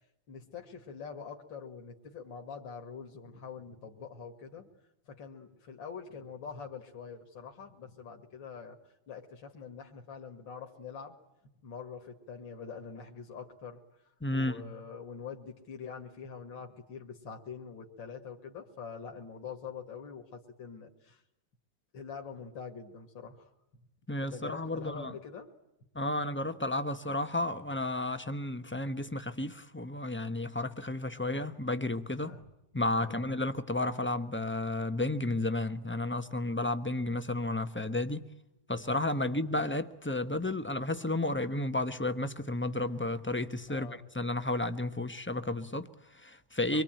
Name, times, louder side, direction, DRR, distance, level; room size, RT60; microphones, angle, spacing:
voice 1, 0.3-4.7 5.1-8.8 9.1-11.2 11.6-13.8 14.3-21.2 21.9-23.5 24.3-25.5 31.1-31.3 32.2-32.4 33.0-33.2 39.2-39.3 43.7-44.0 46.7-46.8, left 6 dB, 70° left, 2.7 m, -45 dB
voice 2, 14.2-14.7 24.1-25.1 25.9-32.4 32.7-38.3 38.7-46.8, left 2 dB, 15° left, 0.4 m, -32 dB
26.0 x 23.5 x 9.1 m
omnidirectional pair, 2.2 m